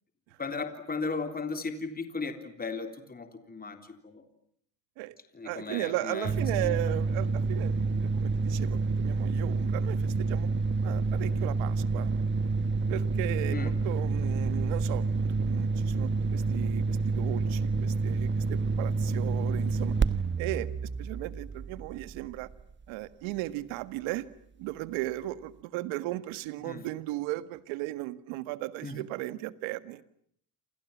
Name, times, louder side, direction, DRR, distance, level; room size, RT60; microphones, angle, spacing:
voice 1, 0.4-4.2 5.3-6.3 6.6-6.7 13.5-13.7 26.6-26.9 28.8-29.0, left 4 dB, 20° left, 7 dB, 3.6 m, -36 dB
voice 2, 5.4-10.5 10.8-12.1 12.9-19.9 20.4-22.5 22.9-24.3 24.6-30.0, right 17 dB, 75° right, 13 dB, 1.8 m, -36 dB
sound 1, 6.2-22.6, right 3 dB, 25° right, 1.2 m, -28 dB
28.5 x 27.5 x 7.3 m, 0.67 s
supercardioid pair, 100°, 48 cm